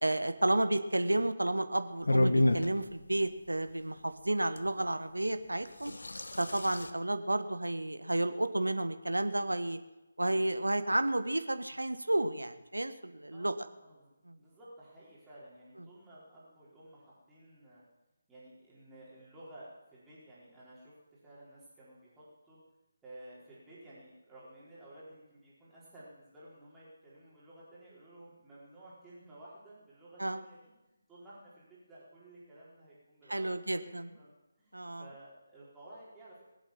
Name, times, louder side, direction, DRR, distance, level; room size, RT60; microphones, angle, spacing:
voice 1, 0.0-5.9 6.4-9.8 10.2-13.5 30.2-30.4 33.3-34.1 34.7-35.0, right 1 dB, 80° right, 10 dB, 1.4 m, -31 dB
sound 1, 2.1-2.7 4.6-4.7 5.6-6.9, left 1 dB, 65° left, 1.2 m, -28 dB
voice 2, 13.3-17.8 18.3-22.6 23.0-30.7 31.1-34.3 34.6-36.4, right 1 dB, 10° right, -9 dB, 4.6 m, -54 dB
22.0 x 8.0 x 7.3 m, 1.0 s
figure-of-eight pair, 150°, 0 cm